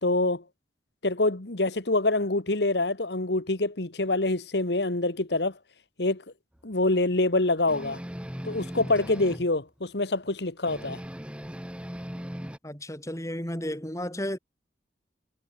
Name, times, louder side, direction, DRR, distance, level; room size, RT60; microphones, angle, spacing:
voice 1, 0.0-0.4 1.0-5.6 6.0-6.2 6.6-8.0 8.4-11.0, left 2 dB, 70° left, 1.8 m, -26 dB
sound 1, 7.7-9.5 10.6-12.6, equal, 5° right, 3.1 m, -38 dB
voice 2, 12.6-14.4, equal, 20° left, 6.6 m, -33 dB
head